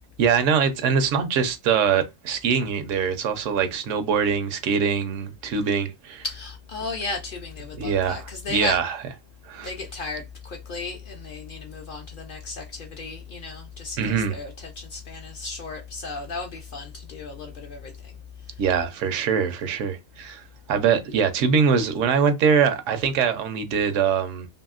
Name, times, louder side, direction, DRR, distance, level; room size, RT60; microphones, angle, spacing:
voice 1, 0.2-6.2 7.8-9.0 9.4-9.7 14.0-14.4 18.6-20.4 20.7-24.5, right 6 dB, 80° right, 0.9 m, -23 dB
voice 2, 6.2-8.8 9.6-18.1, left 3 dB, 55° left, 0.6 m, -35 dB
2.7 x 2.7 x 2.3 m
omnidirectional pair, 1.3 m